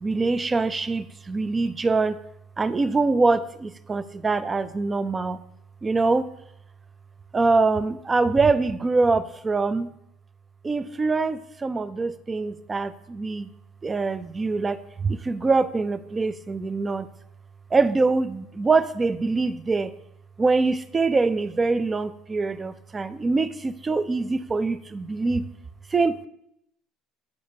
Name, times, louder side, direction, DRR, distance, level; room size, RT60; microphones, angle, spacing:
voice 1, 0.0-2.2 2.6-5.4 5.8-6.3 7.3-9.9 10.6-13.5 13.8-17.1 17.7-19.9 20.4-25.5 25.9-26.3, right 3 dB, 20° right, 15 dB, 0.3 m, -24 dB
9.1 x 6.8 x 2.7 m, 0.78 s
cardioid pair, 135°, 0 cm